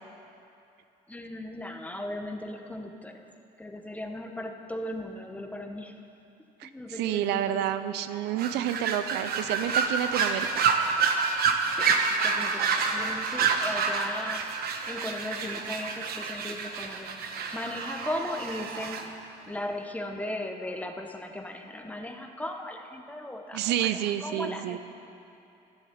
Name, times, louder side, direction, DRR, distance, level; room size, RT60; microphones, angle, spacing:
voice 1, 1.1-3.2 3.6-5.9 6.6-7.6 11.8-11.9 12.2-17.1 17.5-19.1 19.5-24.8, left 1 dB, 10° left, 4 dB, 1.0 m, -37 dB
voice 2, 6.6-10.6 23.5-24.8, right 11 dB, 85° right, 11 dB, 0.6 m, -29 dB
sound 1, 8.4-19.0, right 5 dB, 65° right, 1.1 m, -28 dB
12.5 x 7.2 x 9.4 m, 2.7 s
cardioid pair, 110°, 17 cm